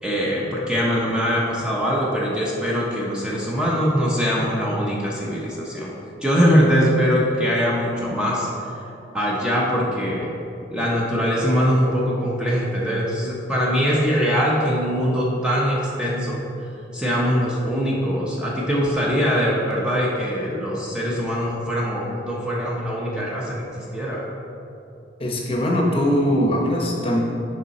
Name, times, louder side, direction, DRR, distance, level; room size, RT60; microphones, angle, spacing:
voice 1, 0.0-5.9 6.2-8.5 9.1-10.3 10.7-16.4 16.9-23.6 23.9-24.2, equal, 5° right, -5 dB, 0.7 m, -22 dB
voice 2, 25.2-27.2, equal, 30° left, -1 dB, 0.9 m, -21 dB
6.7 x 5.6 x 4.2 m, 2.8 s
head